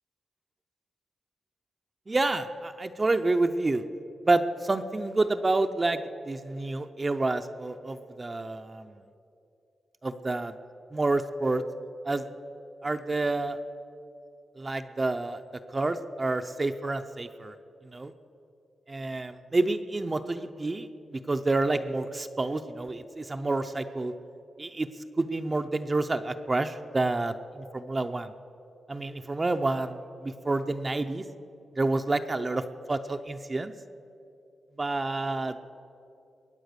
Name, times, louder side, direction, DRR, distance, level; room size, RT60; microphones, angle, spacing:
voice 1, 2.1-3.8 4.2-6.0 6.3-8.9 10.0-10.5 10.9-11.6 12.0-12.2 12.8-13.6 14.6-15.4 15.7-17.5 17.9-18.1 18.9-24.1 24.6-24.9 25.2-28.3 28.9-31.2 31.8-33.7 34.8-35.6, right 2 dB, 25° right, 7 dB, 0.5 m, -28 dB
21.5 x 8.9 x 6.7 m, 2.7 s
wide cardioid pair, 130°, 0 cm